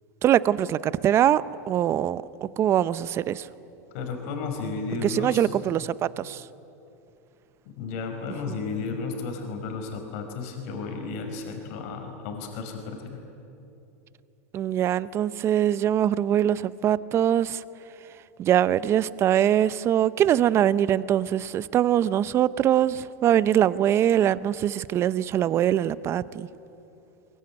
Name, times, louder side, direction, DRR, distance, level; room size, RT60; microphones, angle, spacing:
voice 1, 0.2-1.4 1.7-3.5 5.0-6.5 8.5-8.6 14.5-17.6 18.4-26.5, right 11 dB, 30° right, 17 dB, 0.7 m, -23 dB
voice 2, 3.9-5.5 7.6-13.2, left 4 dB, 60° left, 3 dB, 5.0 m, -33 dB
23.0 x 22.5 x 10.0 m, 2.8 s
supercardioid pair, 130°, 8 cm